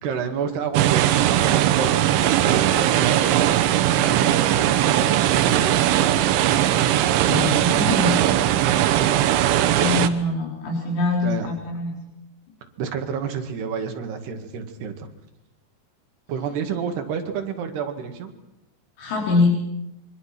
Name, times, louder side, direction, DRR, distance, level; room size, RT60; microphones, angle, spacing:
voice 1, 0.0-5.9 9.0-9.3 9.8-9.9 11.2-11.5 12.8-15.1 16.3-18.3, right 6 dB, 70° right, 6 dB, 4.0 m, -30 dB
sound 1, 0.7-10.1, right 12 dB, 85° right, 3.4 m, -19 dB
voice 2, 7.3-8.2 9.8-11.9 19.0-19.6, left 3 dB, 70° left, 0 dB, 6.2 m, -23 dB
27.0 x 24.0 x 6.0 m, 0.90 s
omnidirectional pair, 5.1 m